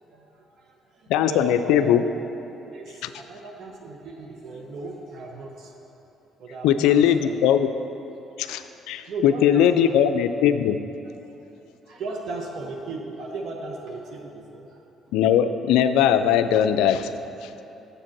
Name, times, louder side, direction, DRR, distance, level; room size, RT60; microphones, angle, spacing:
voice 1, 0.1-2.1 2.7-5.8 6.4-7.0 7.3-7.5 8.1-8.2 9.1-9.9 11.5-14.8, right 2 dB, 60° right, 0 dB, 0.9 m, -36 dB
voice 2, 1.1-2.0 3.0-3.1 6.6-7.7 8.4-10.8 15.1-17.1 17.4-17.5, left 9 dB, 75° left, 10 dB, 0.3 m, -20 dB
7.4 x 6.5 x 6.0 m, 3.0 s
hypercardioid pair, 50°, 0 cm